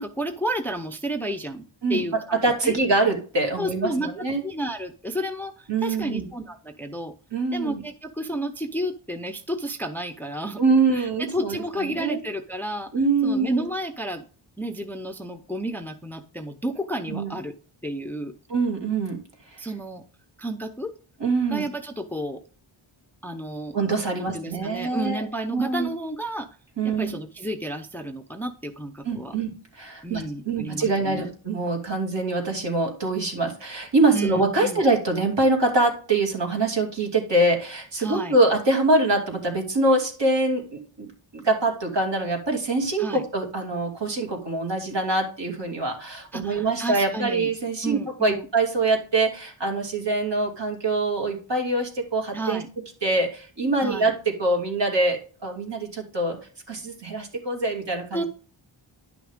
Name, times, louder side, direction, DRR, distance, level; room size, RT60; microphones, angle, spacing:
voice 1, 0.0-1.6 1.9-2.8 3.6-4.1 4.4-7.1 7.5-10.6 10.9-12.9 13.2-14.2 14.6-17.5 17.8-18.3 19.6-20.0 20.4-20.9 21.5-22.4 23.2-23.7 24.2-26.5 26.8-29.3 30.0-31.3 34.1-34.8 38.0-38.4 43.0-43.2 46.3-47.5 47.8-48.5 52.3-52.7 53.8-54.1 58.1-58.2, right 1 dB, 5° left, 7 dB, 0.6 m, -31 dB
voice 2, 2.4-4.4 5.7-6.2 7.3-7.8 10.6-12.2 12.9-13.7 17.1-17.4 18.5-19.2 19.5-19.6 21.2-21.6 23.7-25.2 25.5-25.9 26.8-27.1 29.0-41.1 41.3-52.6 53.0-56.4 56.7-58.3, right 2 dB, 60° right, 1 dB, 2.7 m, -24 dB
10.5 x 6.0 x 3.6 m, 0.39 s
wide cardioid pair, 100°, 49 cm